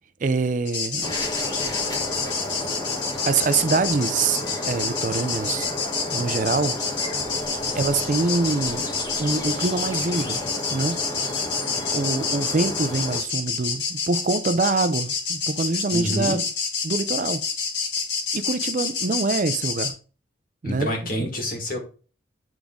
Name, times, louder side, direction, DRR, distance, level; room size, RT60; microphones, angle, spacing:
voice 1, 0.2-1.1 3.3-5.7 6.1-6.7 7.7-8.9 9.2-10.4 10.7-11.0 11.9-16.4 16.8-17.4 18.3-19.9 20.6-20.9 21.2-21.3, right 3 dB, 45° right, 0.4 m, -25 dB
sound 1, 0.7-19.9, left 5 dB, 75° left, 1.6 m, -28 dB
sound 2, 1.0-13.2, left 1 dB, 20° left, 1.1 m, -32 dB
voice 2, 15.9-16.4 20.6-21.8, equal, 50° left, 2.0 m, -27 dB
8.9 x 3.5 x 3.7 m
head